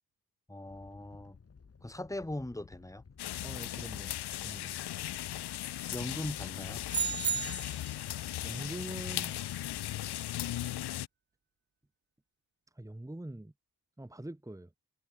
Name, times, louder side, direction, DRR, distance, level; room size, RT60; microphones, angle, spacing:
voice 1, 0.5-1.4 1.8-3.0 5.9-6.8, left 1 dB, 10° left, 4.0 m, -40 dB
Animal, 0.6-8.8, left 5 dB, 35° left, 2.9 m, -56 dB
sound 1, 3.2-11.1, left 13 dB, 80° left, 0.6 m, -37 dB
voice 2, 3.4-4.1 4.4-4.7 8.4-9.3 9.7-9.9 12.7-13.5 14.0-14.7, right 1 dB, 10° right, 2.9 m, -43 dB
sound 2, 6.9-8.0, right 7 dB, 30° right, 0.4 m, -33 dB
wide cardioid pair, 175°, 39 cm